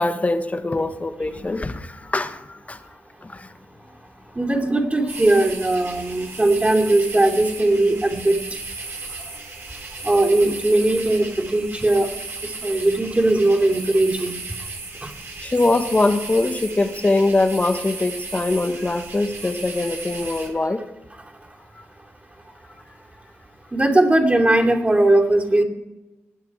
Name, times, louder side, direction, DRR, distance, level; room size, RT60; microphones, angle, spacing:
voice 1, 0.0-2.8 3.2-3.5 15.4-20.8, left 2 dB, 25° left, 9 dB, 1.4 m, -22 dB
voice 2, 4.3-8.6 9.3-9.4 10.0-12.1 12.4-14.4 15.0-15.1 23.7-25.6, right 2 dB, 25° right, 1 dB, 2.9 m, -19 dB
sound 1, 5.1-20.5, right 3 dB, 55° right, 4.1 m, -35 dB
20.0 x 7.3 x 4.7 m, 1.1 s
supercardioid pair, 55°, 5 cm